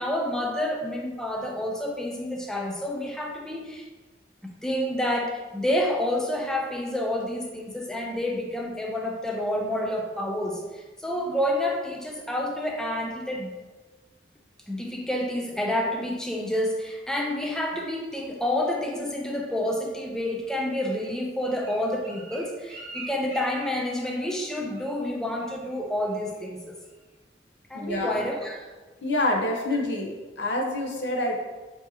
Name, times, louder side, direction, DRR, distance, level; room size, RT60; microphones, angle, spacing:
voice 1, 0.0-3.8 4.4-13.5 14.7-26.8 27.7-28.7, left 1 dB, 5° left, 0 dB, 0.4 m, -29 dB
Bird, 20.4-24.5 24.7-25.1 25.4-25.7 26.1-26.5 26.9-27.0, right 2 dB, 40° right, 1.0 m, -44 dB
voice 2, 27.7-28.3 29.0-31.4, left 1 dB, 80° left, 0 dB, 0.7 m, -27 dB
4.7 x 2.7 x 2.7 m, 1.3 s
head